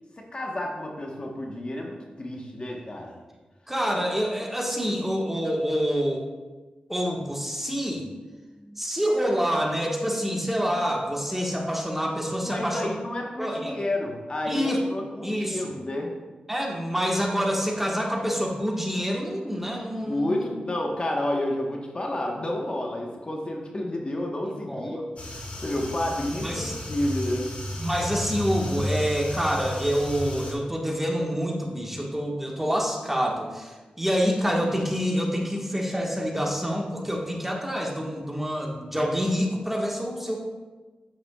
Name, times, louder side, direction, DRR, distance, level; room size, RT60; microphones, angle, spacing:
voice 1, 0.2-3.2 8.6-8.8 12.4-16.1 20.0-25.0 25.6-27.5, left 1 dB, 40° left, 0 dB, 1.2 m, -30 dB
voice 2, 3.7-6.3 6.9-8.1 8.8-12.9 13.4-13.8 14.5-14.8 15.2-15.7 16.5-20.5 24.6-25.1 26.3-26.7 27.8-40.4, equal, 10° right, -1 dB, 1.5 m, -27 dB
sound 1, 25.2-30.5, left 1 dB, 55° left, 1.9 m, -33 dB
9.3 x 8.1 x 2.4 m, 1.3 s
cardioid pair, 55°, 3 cm